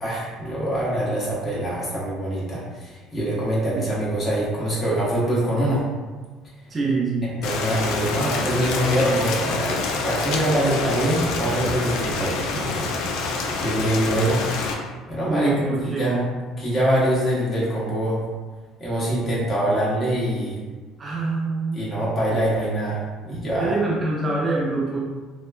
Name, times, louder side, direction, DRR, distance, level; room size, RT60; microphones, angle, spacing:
voice 1, 0.0-5.8 7.2-14.4 15.1-16.3 16.6-18.2 18.8-20.6 21.7-23.7, right 1 dB, 30° left, -7 dB, 0.9 m, -24 dB
voice 2, 6.7-7.3 15.3-16.2 21.0-21.9 23.6-25.0, right 3 dB, 25° right, -4 dB, 0.4 m, -25 dB
Rain, 7.4-14.7, left 4 dB, 75° left, 0.3 m, -27 dB
2.9 x 2.1 x 2.2 m, 1.4 s
cardioid pair, 130°, 0 cm